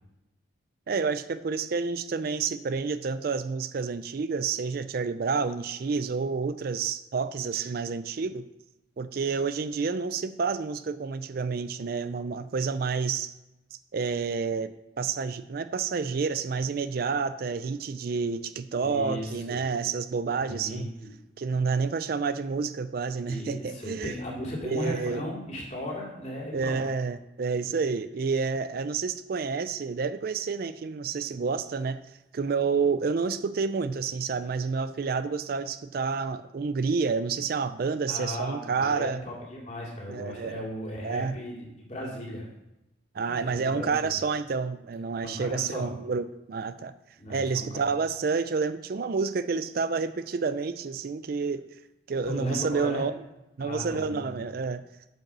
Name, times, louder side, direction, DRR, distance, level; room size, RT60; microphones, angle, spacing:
voice 1, 0.9-8.5 9.0-13.3 13.9-14.7 15.0-20.9 21.4-24.1 24.6-25.2 26.5-32.0 32.3-39.2 40.1-40.6 41.0-41.3 43.1-46.9 47.3-51.6 52.1-53.1 53.6-54.8, right 5 dB, 50° right, 0.4 m, -29 dB
voice 2, 18.8-19.7 20.5-21.1 23.2-26.8 38.1-42.5 43.3-44.2 45.2-45.9 47.2-47.8 52.2-53.0 53.6-54.4, left 1 dB, 35° left, 2.6 m, -36 dB
8.9 x 5.3 x 6.1 m
head